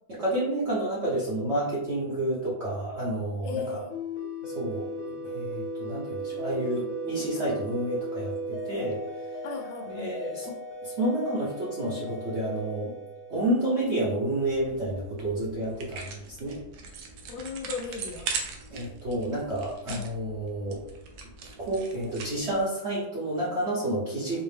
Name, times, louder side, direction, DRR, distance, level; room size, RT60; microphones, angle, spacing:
voice 1, 0.1-3.8 4.4-9.0 9.3-9.4 9.9-10.5 10.8-12.9 13.3-16.6 18.7-20.8 21.6-24.4, right 1 dB, 50° right, -7 dB, 0.9 m, -30 dB
voice 2, 3.4-3.9 9.4-10.1 17.3-18.3 19.9-20.1, left 4 dB, 85° left, 3 dB, 1.4 m, -36 dB
sound 1, 3.9-14.2, right 1 dB, 60° left, 1.0 m, -37 dB
sound 2, 14.4-22.6, right 5 dB, 85° right, 1.5 m, -40 dB
4.8 x 2.1 x 3.3 m, 0.89 s
omnidirectional pair, 2.2 m